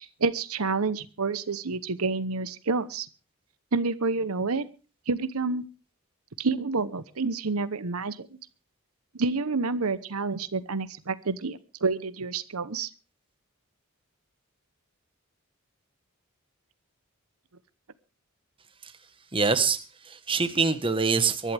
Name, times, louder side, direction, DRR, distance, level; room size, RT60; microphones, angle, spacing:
voice 1, 0.0-3.1 3.7-4.6 5.1-5.6 6.4-8.3 9.2-12.9, right 4 dB, 90° right, 14 dB, 1.0 m, -28 dB
voice 2, 19.3-21.5, right 4 dB, 25° right, 10 dB, 1.3 m, -25 dB
23.5 x 11.5 x 3.5 m, 0.35 s
head